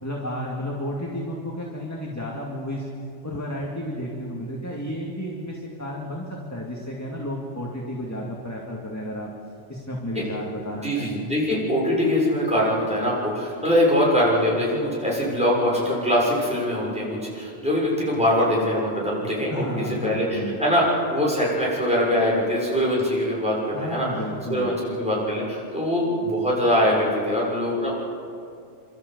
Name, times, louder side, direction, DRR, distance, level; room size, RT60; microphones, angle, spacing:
voice 1, 0.0-2.9 3.2-6.2 6.5-9.3 9.7-11.1 19.5-20.6 23.7-24.8, equal, 15° left, -2 dB, 2.3 m, -32 dB
voice 2, 10.8-24.1 24.5-27.9, equal, 5° right, -5 dB, 6.5 m, -23 dB
29.5 x 13.5 x 8.1 m, 2.4 s
omnidirectional pair, 1.2 m